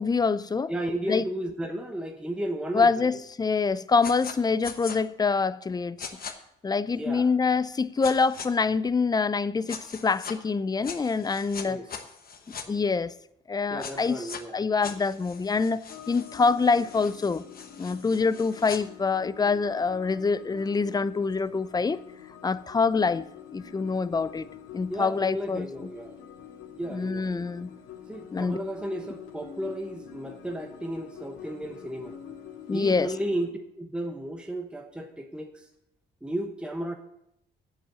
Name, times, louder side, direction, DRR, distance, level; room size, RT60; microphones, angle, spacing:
voice 1, 0.0-0.7 1.1-1.3 2.7-6.1 6.6-11.8 12.7-13.1 13.5-14.2 14.5-15.8 16.1-17.4 17.8-22.0 22.4-23.2 23.5-24.5 24.7-25.7 26.9-27.7 28.3-28.6 32.7-33.1, left 4 dB, 20° left, 0.5 m, -25 dB
voice 2, 0.7-3.1 6.9-7.3 11.6-11.9 13.7-14.6 24.9-26.2 26.8-27.5 28.1-32.2 32.7-35.7 36.2-37.0, right 1 dB, 5° right, 1.0 m, -34 dB
sound 1, 4.0-4.3 4.6-5.0 6.0-6.3 8.0-8.5 9.7-10.3 10.8-12.6 13.8-14.4 14.8-18.8, left 6 dB, 50° left, 1.2 m, -41 dB
sound 2, 15.9-33.5, left 8 dB, 85° left, 2.0 m, -46 dB
8.0 x 7.5 x 7.7 m
cardioid pair, 90°, 20 cm